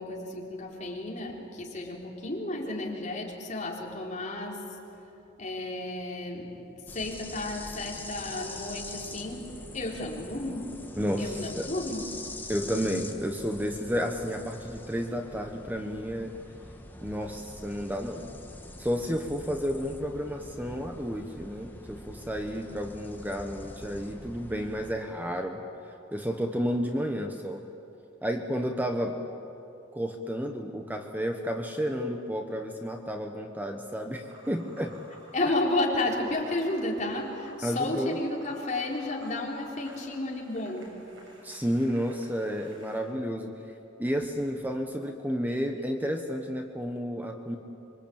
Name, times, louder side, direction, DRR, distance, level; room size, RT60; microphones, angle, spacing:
voice 1, 0.0-4.8 5.4-10.7 11.2-12.2 35.3-41.0, left 2 dB, 40° left, -2 dB, 4.2 m, -32 dB
sound 1, 6.9-24.9, left 2 dB, 10° left, 1.7 m, -44 dB
voice 2, 11.0-11.7 12.5-16.3 17.0-18.3 18.8-25.6 26.1-27.6 28.2-29.2 29.9-35.0 37.6-38.2 41.4-43.5 44.0-47.6, equal, 10° right, 4 dB, 1.2 m, -31 dB
sound 2, 34.2-43.0, right 1 dB, 90° right, 7.5 m, -54 dB
25.5 x 24.0 x 8.9 m, 2.9 s
head